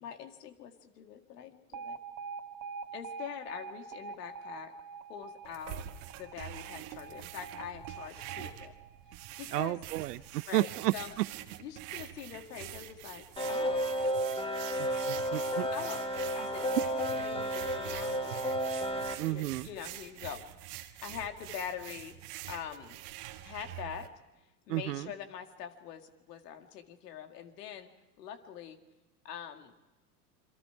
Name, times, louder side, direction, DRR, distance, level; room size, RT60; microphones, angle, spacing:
voice 1, 0.0-2.0 2.9-4.7 5.1-5.9 6.2-8.7 9.4-9.8 10.5-11.2 11.6-13.9 15.7-16.1 16.4-16.8 17.1-18.6 18.9-20.4 21.0-22.2 22.5-23.0 23.4-24.1 24.7-27.9 28.2-28.8 29.2-29.7, left 8 dB, 80° left, 6 dB, 2.1 m, -44 dB
Alarm, 1.7-9.8, right 5 dB, 35° right, 2.2 m, -45 dB
sound 1, 5.4-24.1, right 14 dB, 60° right, 1.6 m, -46 dB
voice 2, 9.5-11.2 14.8-15.7 19.2-19.7 24.7-25.1, right 17 dB, 80° right, 18 dB, 0.8 m, -32 dB
sound 2, 13.4-19.1, equal, 10° left, 1.6 m, -32 dB
27.5 x 23.5 x 4.7 m, 1.0 s
hypercardioid pair, 95°, 47 cm